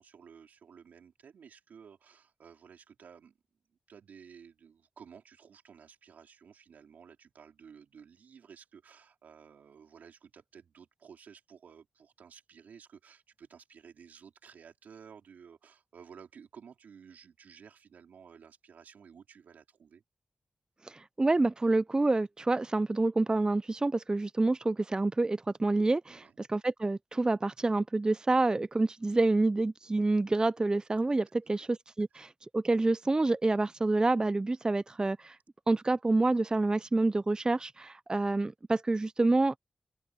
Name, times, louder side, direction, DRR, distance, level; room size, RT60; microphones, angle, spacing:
voice 1, 0.0-3.4 3.9-20.0 26.1-26.4 31.4-31.6, right 7 dB, 90° right, 4.2 m, -54 dB
voice 2, 20.8-35.4 35.7-39.6, right 2 dB, 30° right, 0.4 m, -28 dB
open air
cardioid pair, 50°, 3 cm